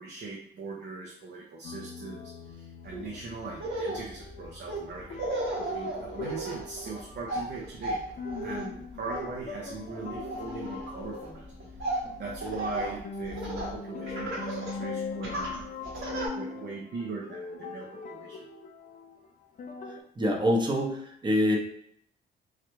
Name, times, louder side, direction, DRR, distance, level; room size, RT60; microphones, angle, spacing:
voice 1, 0.0-5.2 5.6-8.0 8.4-15.6 16.1-18.5, right 3 dB, 55° right, -2 dB, 0.6 m, -40 dB
sound 1, 1.6-20.0, left 4 dB, 40° left, 0.4 m, -41 dB
Laughter, 2.9-3.1 3.5-13.8 14.1-14.8 15.2-16.3, right 1 dB, 80° right, 1.2 m, -35 dB
voice 2, 20.2-21.6, left 1 dB, 25° right, 1 dB, 0.8 m, -25 dB
3.3 x 2.4 x 3.0 m, 0.70 s
cardioid pair, 90°, 20 cm